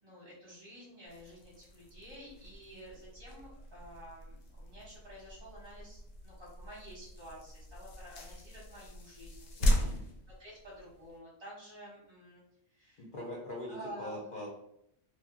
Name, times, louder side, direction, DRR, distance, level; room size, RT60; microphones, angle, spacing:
voice 1, 0.0-9.5 10.4-12.4 12.7-13.0 13.7-14.3, right 1 dB, 25° right, -6 dB, 0.9 m, -50 dB
sound 1, 1.1-11.2, equal, 70° left, 0.9 m, -38 dB
voice 2, 9.6-10.0 13.0-14.5, left 1 dB, 50° left, -3 dB, 0.6 m, -42 dB
2.9 x 2.3 x 2.5 m, 0.74 s
omnidirectional pair, 1.5 m